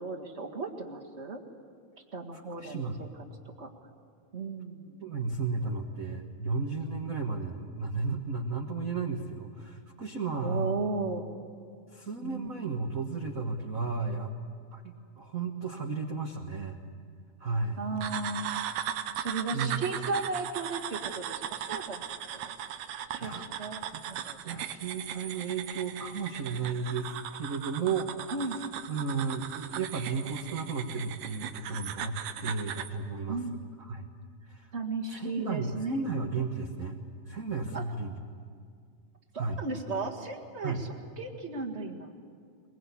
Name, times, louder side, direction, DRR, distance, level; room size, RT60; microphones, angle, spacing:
voice 1, 0.0-1.4 2.1-3.1 3.6-3.7 4.3-5.0 10.4-11.3 12.2-12.6 17.8-18.8 19.1-22.1 22.3-22.5 23.1-24.4 28.3-28.6 33.3-33.6 34.7-36.1 37.7-37.8 39.3-42.1, right 3 dB, 30° right, 2 dB, 1.6 m, -35 dB
voice 2, 2.3-3.0 5.0-10.8 11.9-14.3 14.7-16.8 17.4-17.9 19.0-19.3 19.5-20.1 23.2-23.5 23.9-24.0 24.4-28.1 28.9-34.1 34.5-34.7 35.1-37.0 37.3-38.1 39.3-39.6 40.6-40.8, right 4 dB, 45° right, 2 dB, 1.1 m, -34 dB
sound 1, 18.0-33.0, right 10 dB, 85° right, 2.4 m, -38 dB
22.5 x 22.0 x 8.5 m, 2.2 s
omnidirectional pair, 3.5 m